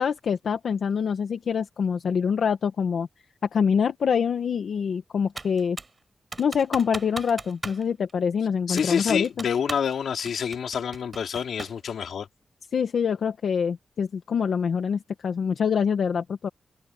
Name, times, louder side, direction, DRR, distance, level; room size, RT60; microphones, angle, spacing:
voice 1, 0.0-3.1 3.5-5.8 6.4-9.5 12.7-16.5, left 6 dB, 70° left, 1.3 m, -25 dB
Computer keyboard, 5.4-6.0 6.3-7.8 8.1-8.2 8.8-9.9 10.3-11.8, right 3 dB, 25° right, 6.0 m, -38 dB
voice 2, 8.7-12.3, left 7 dB, 90° left, 3.4 m, -27 dB
wide cardioid pair, 160°, 0 cm